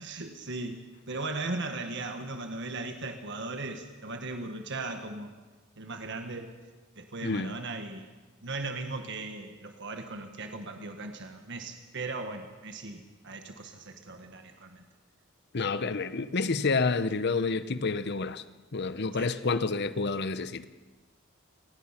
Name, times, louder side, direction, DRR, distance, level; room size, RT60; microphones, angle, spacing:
voice 1, 0.0-5.3 5.8-6.5 7.0-8.1 8.4-14.8 19.1-19.3, right 3 dB, 60° right, 6 dB, 1.5 m, -38 dB
voice 2, 7.2-7.5 15.5-18.4 18.7-20.7, left 4 dB, 55° left, 13 dB, 0.9 m, -29 dB
28.5 x 19.5 x 5.9 m, 1.3 s
head